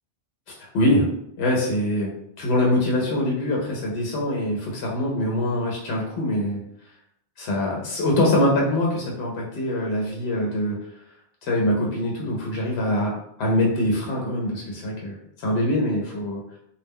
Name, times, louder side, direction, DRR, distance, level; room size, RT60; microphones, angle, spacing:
voice 1, 0.5-1.1 1.4-6.6 7.4-10.8 11.4-16.4, left 1 dB, 80° left, -2 dB, 0.8 m, -24 dB
2.2 x 2.1 x 3.4 m, 0.76 s
omnidirectional pair, 1.1 m